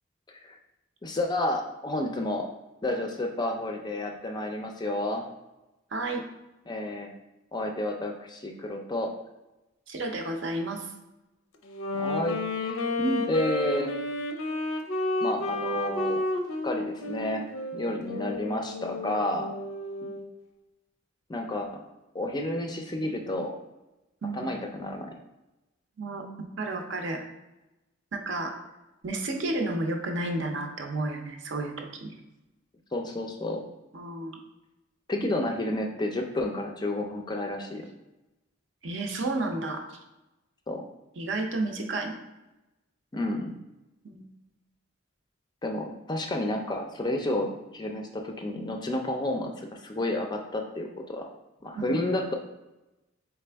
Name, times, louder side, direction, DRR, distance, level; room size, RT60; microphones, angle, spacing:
voice 1, 1.0-2.5 2.8-5.2 6.7-7.1 7.5-9.1 11.9-12.8 13.3-13.9 15.2-16.2 16.6-17.4 17.7-19.5 21.3-21.7 22.1-23.6 24.3-25.1 32.9-33.6 35.1-37.9 40.7-40.8 43.1-43.6 45.6-51.3 51.6-52.3, left 1 dB, 20° left, 3 dB, 0.4 m, -30 dB
voice 2, 5.9-6.2 9.9-10.9 13.0-13.2 20.2-20.3 24.2-24.5 26.0-26.2 26.6-27.2 28.1-28.6 29.0-32.2 33.9-34.4 38.8-40.0 41.2-42.2 44.0-44.2 51.7-52.0, right 2 dB, 60° right, 3 dB, 0.6 m, -31 dB
Wind instrument woodwind instrument, 11.7-20.3, left 2 dB, 85° left, 0.6 m, -31 dB
4.1 x 3.4 x 3.4 m, 1.0 s
head